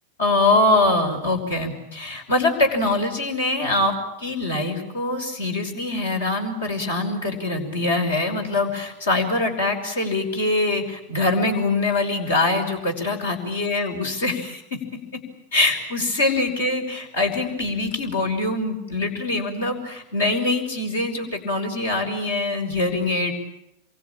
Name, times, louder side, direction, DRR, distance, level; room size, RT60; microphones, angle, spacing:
voice 1, 0.2-15.2 15.5-23.3, left 2 dB, 65° left, 5 dB, 5.6 m, -23 dB
27.5 x 24.0 x 8.8 m, 0.85 s
figure-of-eight pair, 90°, 0 cm